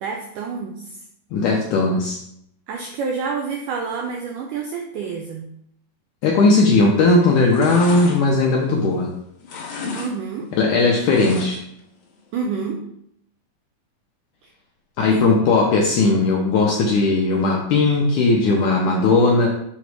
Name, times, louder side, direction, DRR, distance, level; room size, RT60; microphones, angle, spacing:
voice 1, 0.0-1.0 2.7-5.5 10.0-10.5 12.3-12.8 14.4-14.5 15.1-15.3, right 5 dB, 85° right, 1 dB, 1.8 m, -28 dB
voice 2, 1.3-2.2 6.2-9.1 10.6-11.6 15.0-19.5, left 3 dB, 80° left, -1 dB, 1.8 m, -17 dB
sound 1, 6.7-7.0 7.3-9.1 9.4-10.1 10.4-11.8 12.2-12.3, left 4 dB, 65° left, 2.3 m, -34 dB
7.2 x 3.1 x 4.7 m, 0.73 s
omnidirectional pair, 4.4 m